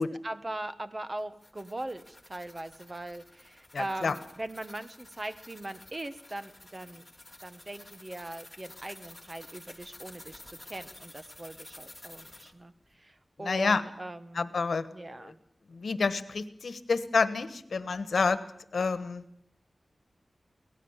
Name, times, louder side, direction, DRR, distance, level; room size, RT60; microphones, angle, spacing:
voice 1, 0.0-7.0 7.4-14.5 14.9-15.4, right 1 dB, 30° right, 11 dB, 1.3 m, -40 dB
sound 1, 1.2-12.5, left 2 dB, 15° left, 3.0 m, -51 dB
voice 2, 3.7-4.1 13.4-13.8 14.3-14.9 15.2-15.3 15.7-18.4 18.7-19.2, left 4 dB, 80° left, 13 dB, 1.3 m, -28 dB
23.5 x 18.0 x 7.3 m, 0.73 s
wide cardioid pair, 90°, 0 cm